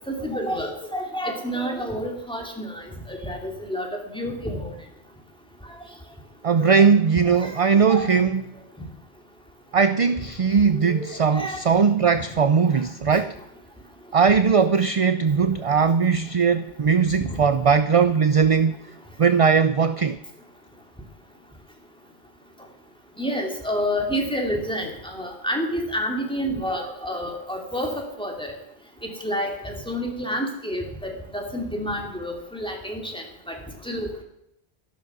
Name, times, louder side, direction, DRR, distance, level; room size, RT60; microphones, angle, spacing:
voice 1, 0.1-2.7 3.1-3.9 4.1-4.7 6.5-6.7 7.4-7.5 7.9-8.1 10.9-11.6 17.2-17.4 23.2-27.9 28.2-28.5 29.0-33.6 33.8-34.2, equal, 5° left, 1 dB, 2.7 m, -29 dB
voice 2, 6.4-8.4 9.7-13.4 14.1-18.8 19.2-20.2, right 6 dB, 45° right, 12 dB, 0.5 m, -19 dB
13.5 x 12.0 x 6.1 m, 0.80 s
omnidirectional pair, 1.1 m